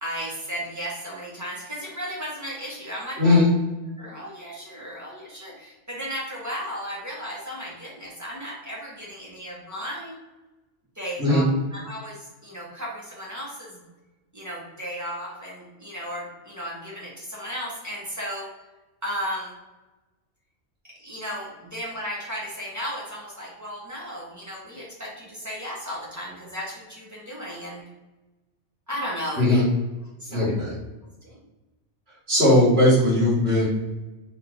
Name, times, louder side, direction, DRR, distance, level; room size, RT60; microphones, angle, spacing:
voice 1, 0.0-3.4 4.0-10.2 10.9-11.4 11.7-13.8 14.3-18.5 19.0-19.5 20.8-27.8 28.9-29.6 30.2-30.5 31.2-31.4, equal, 15° right, -5 dB, 1.3 m, -35 dB
voice 2, 3.2-3.5 11.2-11.4 29.4-29.7 30.3-30.7 32.3-33.6, left 1 dB, 55° right, -9 dB, 1.9 m, -18 dB
3.7 x 3.2 x 4.0 m, 1.1 s
omnidirectional pair, 1.2 m